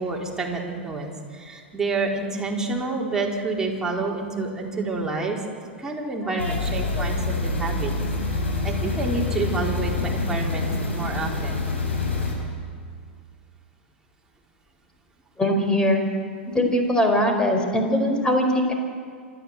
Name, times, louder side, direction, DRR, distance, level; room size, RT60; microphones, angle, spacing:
voice 1, 0.0-5.4 5.8-7.9 8.6-11.6, right 3 dB, 10° right, -2 dB, 4.2 m, -28 dB
voice 2, 6.2-7.0 15.4-16.0 16.5-18.7, left 1 dB, 10° left, 3 dB, 4.8 m, -22 dB
sound 1, 6.4-12.3, left 3 dB, 80° left, 6.4 m, -26 dB
27.0 x 12.5 x 7.9 m, 2.1 s
figure-of-eight pair, 100°, 6 cm